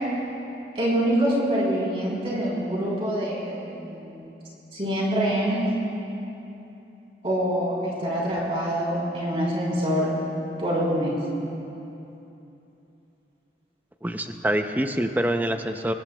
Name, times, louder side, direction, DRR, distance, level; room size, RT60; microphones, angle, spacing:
voice 1, 0.8-4.2 4.7-5.6 7.2-10.1 10.6-11.1, equal, 35° right, -6 dB, 3.7 m, -25 dB
voice 2, 14.0-15.9, right 1 dB, 10° right, 6 dB, 0.5 m, -25 dB
24.5 x 19.5 x 2.3 m, 2.9 s
head